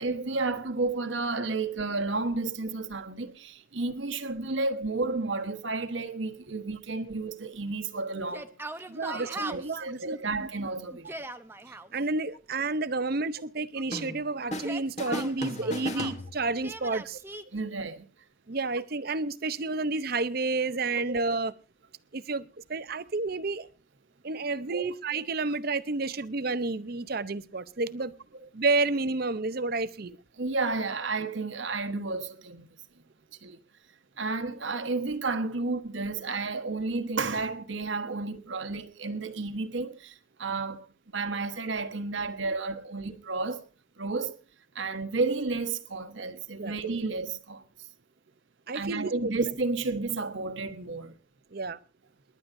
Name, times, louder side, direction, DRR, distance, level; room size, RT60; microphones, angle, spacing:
voice 1, 0.0-8.5 9.1-11.2 17.5-18.1 24.7-24.9 30.4-32.7 33.4-33.6 34.2-40.9 41.1-43.6 44.0-44.4 44.7-47.6 48.7-51.2, right 3 dB, 70° right, 1.3 m, -32 dB
Yell, 8.3-9.8 10.9-11.9 14.5-16.2 16.6-17.4, right 2 dB, 10° right, 0.7 m, -40 dB
voice 2, 8.9-10.5 11.9-17.2 18.5-21.5 22.1-22.4 22.7-23.7 24.2-28.1 28.5-30.2 46.6-46.8 48.7-49.3 51.5-51.8, right 3 dB, 50° right, 0.7 m, -30 dB
sound 1, 13.9-14.7 15.0-16.7, left 1 dB, 35° left, 1.6 m, -36 dB
28.5 x 11.5 x 2.7 m
head